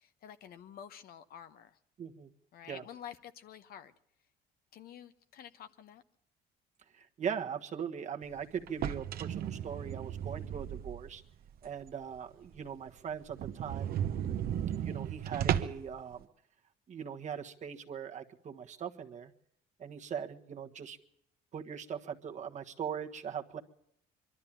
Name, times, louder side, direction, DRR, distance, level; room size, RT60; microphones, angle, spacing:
voice 1, 0.0-1.8 2.5-3.9 4.7-6.0, left 9 dB, 65° left, 10 dB, 0.9 m, -49 dB
voice 2, 2.0-2.3 2.6-2.8 6.9-11.2 11.6-14.0 14.8-16.3 16.9-19.3 19.8-21.0 21.5-23.6, right 7 dB, 45° right, 5 dB, 1.4 m, -40 dB
sound 1, 8.7-11.2 11.6-11.7 12.2-12.3 12.5-12.6 12.9-13.0 13.3-15.9, right 10 dB, 60° right, 1.1 m, -35 dB
23.5 x 12.5 x 8.9 m, 0.74 s
cardioid pair, 110°, 17 cm